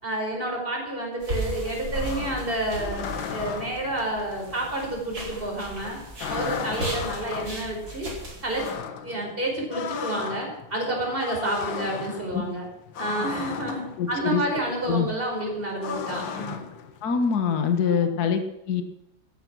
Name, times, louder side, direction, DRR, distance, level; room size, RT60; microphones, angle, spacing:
voice 1, 0.0-3.0 3.3-6.0 6.3-8.1 8.4-8.6 9.0-12.7 13.0-16.6 17.9-18.3, right 1 dB, 30° right, 0 dB, 5.4 m, -29 dB
sound 1, 1.2-8.7, right 1 dB, 55° right, 5.3 m, -36 dB
sound 2, 1.6-17.9, left 7 dB, 80° left, 1.9 m, -37 dB
voice 2, 14.0-14.4 14.9-15.1 17.0-18.8, left 6 dB, 60° left, 7 dB, 1.8 m, -24 dB
16.5 x 14.0 x 6.2 m, 0.82 s
omnidirectional pair, 2.0 m